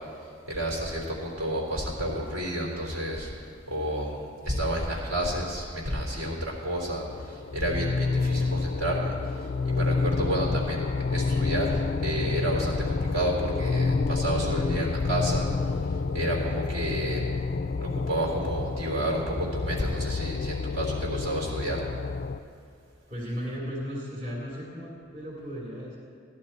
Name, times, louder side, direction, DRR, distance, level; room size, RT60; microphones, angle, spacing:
voice 1, 0.5-3.3 3.7-4.2 4.4-9.1 9.6-10.8 11.1-15.5 16.1-17.2 17.8-21.8, right 1 dB, 70° right, -2 dB, 3.5 m, -30 dB
sound 1, 7.1-22.4, left 4 dB, 40° left, 0.3 m, -29 dB
voice 2, 23.1-26.0, equal, 40° right, -5 dB, 2.7 m, -35 dB
17.0 x 11.5 x 4.4 m, 2.4 s
head